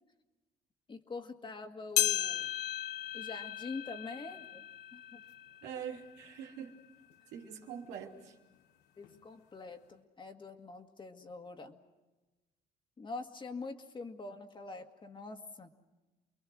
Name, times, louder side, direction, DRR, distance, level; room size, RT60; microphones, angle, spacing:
voice 1, 0.9-2.5 3.1-4.6 4.9-5.2 9.0-11.8 13.0-15.7, left 3 dB, 30° left, 5 dB, 2.1 m, -44 dB
sound 1, 2.0-6.6 7.1-7.2 8.0-8.1 9.0-9.1, left 13 dB, 90° left, 1.3 m, -36 dB
voice 2, 5.6-6.8 7.3-8.3, right 8 dB, 90° right, 1 dB, 3.1 m, -44 dB
29.5 x 22.0 x 6.4 m, 1.1 s
cardioid pair, 110°, 17 cm